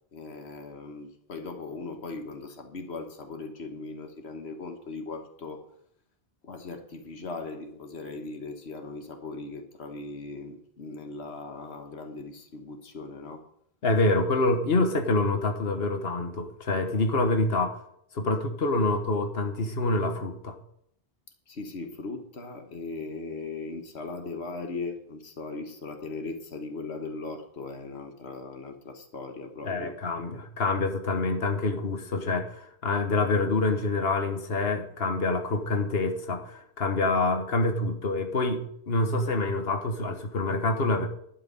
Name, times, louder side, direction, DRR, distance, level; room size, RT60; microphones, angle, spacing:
voice 1, 0.1-5.6 6.4-13.5 21.5-30.0, left 3 dB, 90° left, 5 dB, 1.6 m, -39 dB
voice 2, 13.8-17.8 18.1-20.6 29.6-41.1, left 2 dB, 70° left, 5 dB, 1.6 m, -26 dB
11.5 x 6.6 x 8.9 m, 0.70 s
omnidirectional pair, 1.1 m